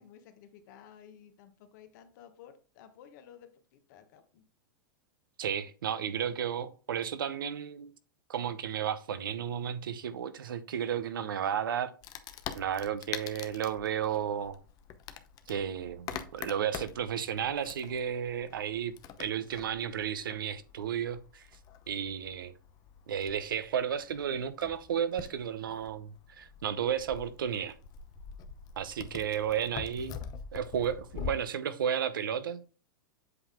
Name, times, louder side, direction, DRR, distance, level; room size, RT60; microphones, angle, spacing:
voice 1, 0.0-4.4, left 9 dB, 60° left, 1.2 m, -54 dB
voice 2, 5.4-7.9 8.3-11.9 12.5-14.6 15.5-21.4 21.9-22.5 23.1-27.8 28.8-30.1 30.5-32.6, right 8 dB, 80° right, 0.8 m, -33 dB
Wood, 12.0-31.3, left 8 dB, 35° left, 0.7 m, -45 dB
7.9 x 3.6 x 3.6 m
hypercardioid pair, 115°, 11 cm